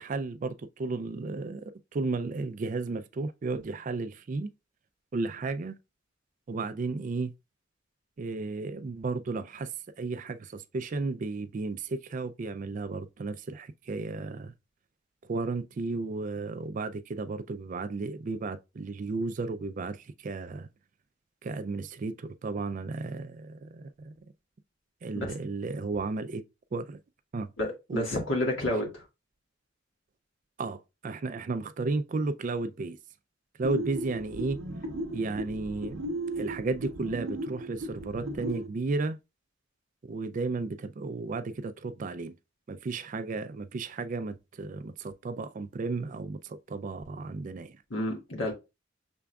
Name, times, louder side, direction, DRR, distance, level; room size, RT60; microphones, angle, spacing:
voice 1, 0.0-1.6 1.9-4.5 5.1-5.8 6.5-7.3 8.2-9.7 10.0-14.5 15.2-20.7 21.4-24.2 25.0-26.4 26.7-27.0 27.3-27.5 27.9-28.0 30.6-33.0 33.6-34.6 35.1-36.0 36.4-39.2 40.1-42.3 42.7-47.8, right 3 dB, 40° right, 0.4 m, -33 dB
voice 2, 27.6-29.0 47.9-48.5, left 1 dB, 75° left, 1.7 m, -30 dB
sound 1, 33.6-38.7, right 1 dB, 85° right, 0.8 m, -36 dB
5.9 x 3.5 x 2.3 m
head